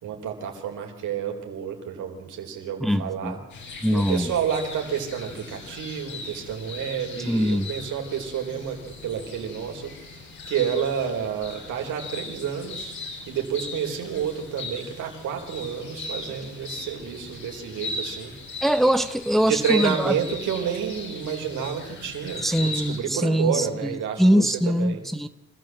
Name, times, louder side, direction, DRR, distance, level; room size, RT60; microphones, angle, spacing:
voice 1, 0.0-3.4 3.9-13.0 13.3-18.4 19.4-25.0, right 8 dB, 80° right, 2 dB, 4.3 m, -30 dB
voice 2, 2.8-3.3 3.8-4.3 7.2-7.7 18.6-20.1 22.4-23.7 24.2-25.3, equal, ahead, 10 dB, 0.9 m, -22 dB
sound 1, 3.5-23.0, left 2 dB, 70° left, 6.2 m, -38 dB
25.5 x 14.0 x 7.8 m, 0.97 s
cardioid pair, 90°, 30 cm